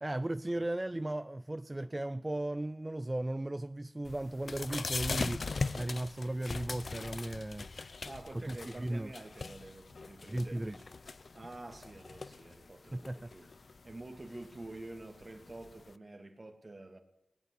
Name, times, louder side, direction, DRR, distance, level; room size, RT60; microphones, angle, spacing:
voice 1, 0.0-5.5 5.7-7.7 8.3-9.1 10.3-10.8 12.9-13.3, right 1 dB, 25° right, 0.4 m, -36 dB
sound 1, 4.0-15.9, left 4 dB, 60° left, 0.6 m, -41 dB
voice 2, 8.0-10.8 11.3-13.5 13.8-17.0, right 2 dB, 40° right, 2.3 m, -48 dB
18.5 x 8.0 x 9.7 m
cardioid pair, 45°, 0 cm